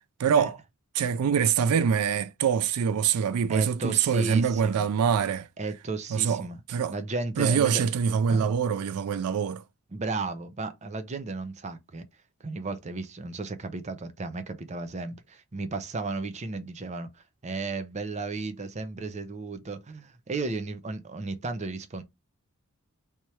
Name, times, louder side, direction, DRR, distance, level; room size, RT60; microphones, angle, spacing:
voice 1, 0.2-0.6 1.0-5.5 6.1-6.4 6.7-6.9 7.4-9.6, right 7 dB, 85° right, 0.3 m, -24 dB
voice 2, 3.5-4.8 5.6-6.6 6.9-7.9 8.3-8.5 9.9-12.1 12.4-22.0, right 3 dB, 30° right, 0.5 m, -34 dB
3.4 x 2.9 x 3.1 m
head